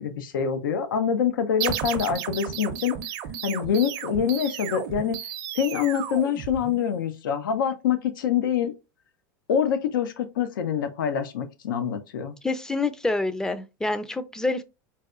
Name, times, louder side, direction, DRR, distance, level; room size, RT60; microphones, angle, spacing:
voice 1, 0.0-2.9 3.4-5.2 5.5-8.7 9.5-12.4, left 8 dB, 90° left, 0.5 m, -25 dB
sound 1, 1.6-7.0, right 10 dB, 55° right, 0.6 m, -33 dB
voice 2, 12.4-14.6, left 2 dB, 5° left, 0.4 m, -27 dB
4.0 x 2.2 x 2.4 m
supercardioid pair, 115°, 11 cm